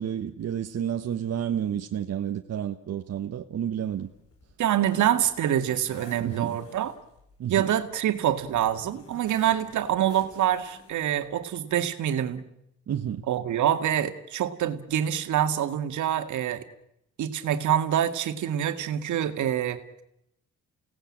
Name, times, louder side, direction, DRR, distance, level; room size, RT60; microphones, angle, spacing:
voice 1, 0.0-4.1 6.2-6.6 7.4-7.5 12.9-13.2, right 9 dB, 55° right, 1.4 m, -30 dB
Zipper (clothing), 3.9-11.3, left 2 dB, 55° left, 6.3 m, -51 dB
voice 2, 4.6-6.9 7.5-12.4 13.3-16.6 17.2-19.8, right 10 dB, 75° right, 2.2 m, -26 dB
29.5 x 18.0 x 8.8 m
cardioid pair, 90°, 30 cm